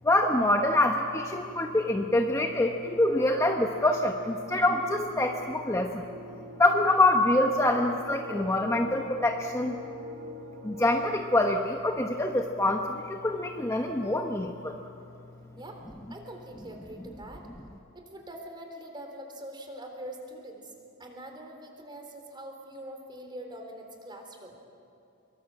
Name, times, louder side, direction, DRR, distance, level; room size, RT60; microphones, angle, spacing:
voice 1, 0.0-6.1 6.6-9.8 10.6-14.8, left 1 dB, 15° left, 3 dB, 1.0 m, -25 dB
sound 1, 1.9-11.1, left 2 dB, 65° right, 4.5 m, -43 dB
voice 2, 16.1-17.5 17.9-20.7 21.0-24.6, right 1 dB, 20° right, 3 dB, 3.7 m, -43 dB
25.0 x 23.0 x 7.6 m, 2.6 s
head